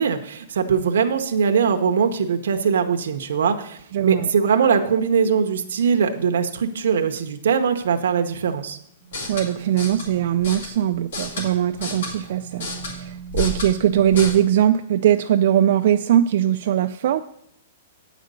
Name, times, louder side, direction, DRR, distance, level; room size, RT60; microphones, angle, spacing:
voice 1, 0.0-8.8, right 6 dB, 75° right, 6 dB, 0.8 m, -21 dB
voice 2, 3.9-4.3 9.3-17.2, right 11 dB, 50° right, 7 dB, 0.3 m, -20 dB
sound 1, 9.0-14.3, left 1 dB, 60° left, 2.6 m, -32 dB
8.9 x 5.1 x 6.6 m, 0.71 s
hypercardioid pair, 175°, 0 cm